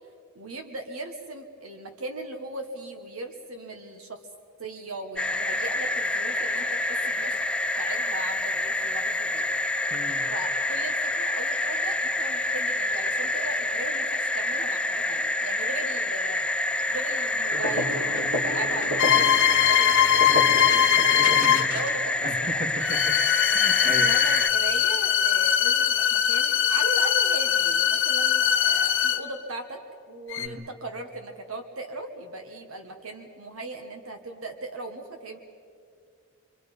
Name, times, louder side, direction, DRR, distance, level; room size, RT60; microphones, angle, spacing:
voice 1, 0.3-4.2 4.6-7.4 7.8-9.4 10.3-16.5 16.9-22.6 23.8-29.8 30.1-35.4, right 2 dB, 80° right, 5 dB, 1.5 m, -38 dB
sound 1, 5.2-24.5, left 2 dB, 5° left, 0.5 m, -27 dB
voice 2, 9.9-10.3 21.2-21.8 22.2-23.2 23.5-24.2 30.4-30.7, equal, 40° right, 3 dB, 2.4 m, -36 dB
sound 2, 17.5-22.1, equal, 60° right, 4.9 m, -32 dB
sound 3, 19.0-21.8 22.8-29.4 30.3-30.5, left 9 dB, 65° left, 0.9 m, -21 dB
29.0 x 23.5 x 5.4 m, 2.2 s
head